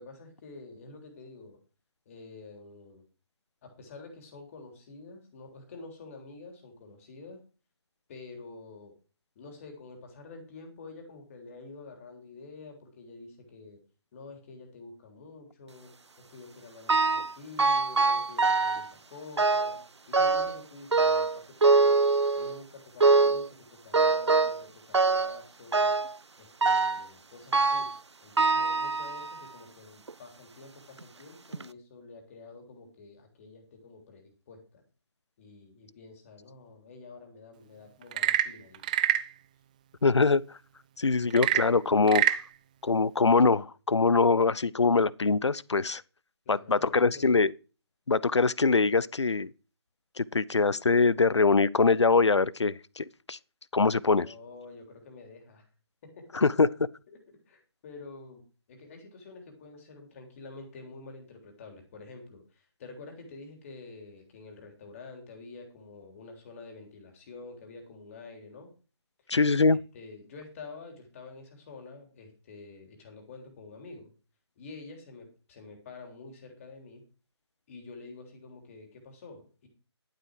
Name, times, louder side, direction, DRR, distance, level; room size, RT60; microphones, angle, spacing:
voice 1, 0.0-1.6 2.1-3.0 3.6-7.4 8.1-8.9 9.4-13.8 14.1-15.9 16.2-19.8 20.1-22.0 22.4-25.9 26.4-27.9 28.2-34.8 35.4-38.9 46.5-47.4 54.1-55.7 56.0-56.4 57.1-58.4 58.7-68.7 69.7-74.1 74.6-77.0 77.7-79.7, left 3 dB, 30° left, 3.3 m, -48 dB
sound 1, 16.9-17.3 17.6-18.9 19.4-19.8 20.1-20.6 20.9-22.6 23.0-23.5 23.9-24.6 24.9-25.4 25.7-26.1 26.6-27.1 27.5-28.0 28.4-29.4 30.1-30.2 31.0-31.1 31.5-31.6, right 4 dB, 80° right, 0.7 m, -24 dB
Frog / Percussion / Wood, 38.0-39.3 41.3-42.5, right 11 dB, 15° right, 0.4 m, -26 dB
voice 2, 40.0-40.4 41.0-42.2 42.8-46.0 46.5-47.5 48.1-49.5 50.2-53.4 53.7-54.3 56.3-56.7 69.3-69.8, left 4 dB, 80° left, 0.6 m, -23 dB
12.0 x 7.7 x 4.8 m
figure-of-eight pair, 150°, 14 cm